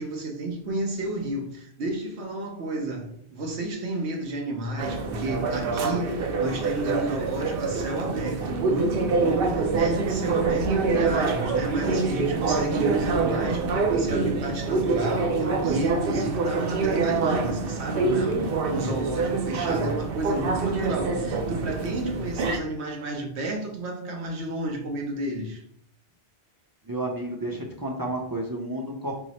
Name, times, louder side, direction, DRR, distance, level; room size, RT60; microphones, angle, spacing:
voice 1, 0.0-25.6, right 2 dB, 80° right, 1.2 m, -31 dB
sound 1, 4.8-22.6, right 4 dB, 65° right, 0.7 m, -26 dB
voice 2, 26.9-29.2, right 1 dB, 25° right, 0.5 m, -31 dB
4.6 x 2.0 x 4.2 m
omnidirectional pair, 1.1 m